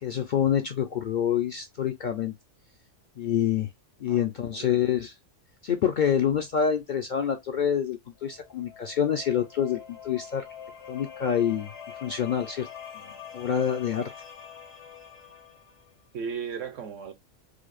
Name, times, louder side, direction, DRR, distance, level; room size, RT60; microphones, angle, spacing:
voice 1, 0.0-2.3 3.2-3.7 4.0-5.1 5.6-10.5 10.9-11.7 12.0-12.7 13.3-14.1, left 8 dB, 60° left, 0.5 m, -26 dB
sound 1, 8.2-15.9, left 7 dB, 85° left, 1.7 m, -45 dB
voice 2, 16.1-17.1, right 6 dB, 80° right, 1.2 m, -36 dB
4.9 x 2.0 x 2.4 m
omnidirectional pair, 1.3 m